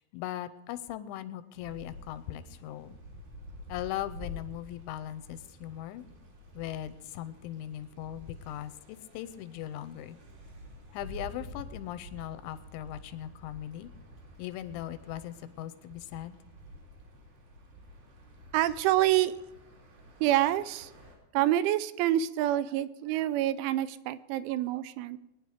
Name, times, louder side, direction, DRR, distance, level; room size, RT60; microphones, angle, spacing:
voice 1, 0.0-3.0 3.7-6.1 6.5-10.2 10.9-13.9 14.4-16.4, left 12 dB, 85° left, 12 dB, 3.0 m, -39 dB
sound 1, 1.5-21.2, left 1 dB, 55° right, 4.9 m, -49 dB
voice 2, 18.5-19.3 20.2-20.9 21.3-25.2, right 13 dB, 90° right, 15 dB, 3.1 m, -27 dB
21.5 x 9.9 x 4.9 m, 0.92 s
omnidirectional pair, 5.4 m